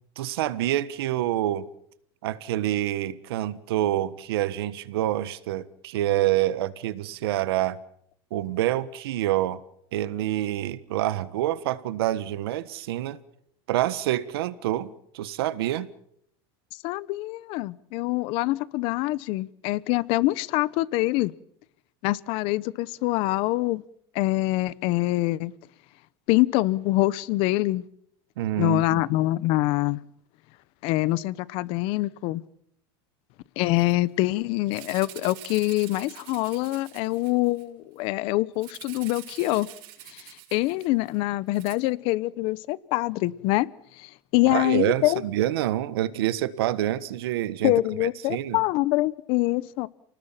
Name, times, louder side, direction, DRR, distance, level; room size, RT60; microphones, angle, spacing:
voice 1, 0.2-1.7 2.2-7.8 8.3-9.6 9.9-13.2 13.7-14.9 15.1-15.9 28.4-29.0 44.5-47.7 48.0-48.6, right 13 dB, 85° right, 1.5 m, -27 dB
voice 2, 16.8-21.3 22.0-23.8 24.1-25.5 26.3-27.8 28.6-30.0 30.8-32.4 33.6-39.7 40.1-43.7 44.0-45.2 47.6-49.9, left 18 dB, 45° left, 0.9 m, -25 dB
Rattle (instrument), 33.7-33.9 34.2-34.3 34.7-37.6 38.6-41.1 41.5-41.7, right 15 dB, 65° right, 5.9 m, -45 dB
29.0 x 19.0 x 7.5 m
supercardioid pair, 160°, 12 cm